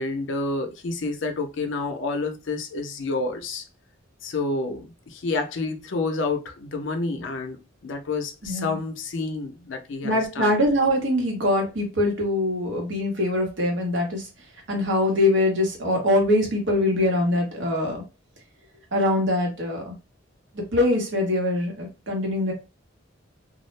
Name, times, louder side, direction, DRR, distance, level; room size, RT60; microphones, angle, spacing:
voice 1, 0.0-3.6 4.2-7.6 7.8-10.6, left 3 dB, 70° left, 0.5 m, -29 dB
voice 2, 8.4-8.8 10.0-14.3 14.7-18.0 18.9-19.9 20.5-22.5, left 1 dB, 65° right, 1.0 m, -23 dB
2.3 x 2.0 x 3.1 m
head